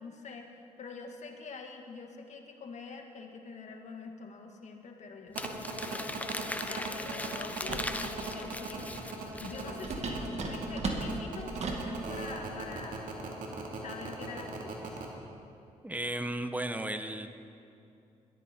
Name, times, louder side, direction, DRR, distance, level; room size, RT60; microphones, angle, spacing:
voice 1, 0.0-13.2 13.8-14.9, left 4 dB, 60° left, 3 dB, 2.0 m, -46 dB
Crumpling crinkling, 5.3-9.9, left 1 dB, 10° left, 1.0 m, -39 dB
sound 1, 5.3-15.0, right 4 dB, 75° right, 2.6 m, -38 dB
sound 2, 7.7-8.0 9.8-11.9, right 3 dB, 55° right, 2.2 m, -35 dB
voice 2, 15.8-17.3, right 1 dB, 10° right, 8 dB, 1.1 m, -34 dB
21.0 x 14.0 x 4.5 m, 2.7 s
cardioid pair, 65°, 14 cm